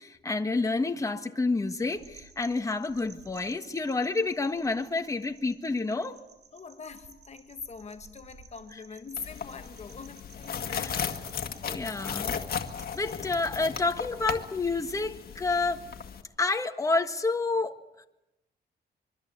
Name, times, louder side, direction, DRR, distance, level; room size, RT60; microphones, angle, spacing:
voice 1, 0.0-6.2 8.7-8.8 10.7-10.9 11.6-12.3 12.9-15.8 16.4-17.8, left 3 dB, 20° left, 1.6 m, -29 dB
sound 1, 1.7-13.1, right 5 dB, 75° right, 5.2 m, -56 dB
voice 2, 6.5-11.1, left 5 dB, 40° left, 1.5 m, -43 dB
sound 2, 9.2-16.2, left 7 dB, 60° left, 2.0 m, -36 dB
25.5 x 23.5 x 8.1 m
wide cardioid pair, 140°, 18 cm